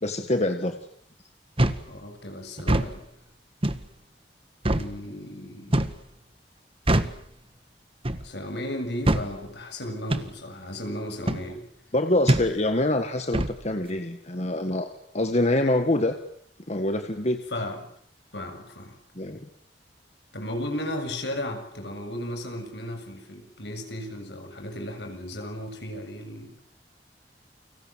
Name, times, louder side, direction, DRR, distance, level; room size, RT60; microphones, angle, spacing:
voice 1, 0.0-0.8 11.9-14.9 15.1-16.1 16.7-17.4 19.1-19.4, left 1 dB, 40° left, 7 dB, 1.7 m, -25 dB
sound 1, 1.6-1.9 2.6-2.9 3.6-3.9 4.6-4.9 5.7-6.0 6.9-7.2 8.0-8.3 9.1-9.3 10.1-10.3 11.3-11.5 12.3-12.5 13.3-13.6, right 1 dB, 35° right, 1.6 m, -23 dB
voice 2, 1.8-3.0 4.6-5.9 8.2-11.6 17.5-17.8 18.3-19.0 20.3-26.6, left 1 dB, 75° left, 5 dB, 7.2 m, -35 dB
29.5 x 24.5 x 7.5 m, 0.68 s
head